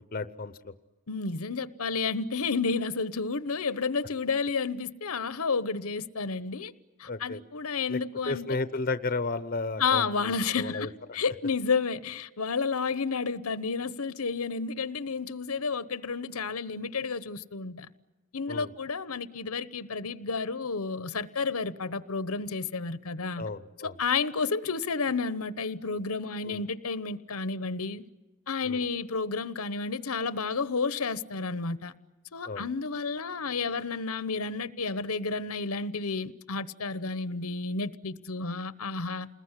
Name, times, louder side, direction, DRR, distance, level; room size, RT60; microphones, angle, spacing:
voice 1, 0.1-0.7 7.1-7.4 7.9-8.0 8.3-10.9 18.5-18.7 23.4-23.9 26.5-26.6 28.6-28.8 32.5-32.6, left 3 dB, 40° left, 0.8 m, -33 dB
voice 2, 1.1-6.7 7.0-8.6 9.8-17.9 18.3-23.5 23.8-28.0 28.5-31.9 32.3-39.3, left 4 dB, 80° left, 1.0 m, -31 dB
29.0 x 20.5 x 9.8 m
head